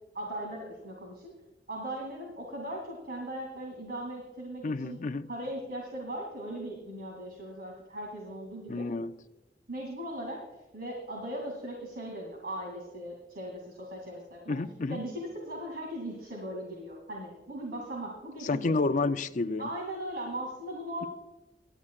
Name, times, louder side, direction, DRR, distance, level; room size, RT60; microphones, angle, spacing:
voice 1, 0.1-1.3 1.7-5.0 5.3-8.8 9.7-14.6 14.9-18.7 19.6-21.1, right 1 dB, 60° right, 2.5 m, -38 dB
voice 2, 4.6-5.3 8.7-9.2 14.5-15.0 18.4-19.7, left 3 dB, 45° left, 0.5 m, -30 dB
18.5 x 12.0 x 2.4 m
head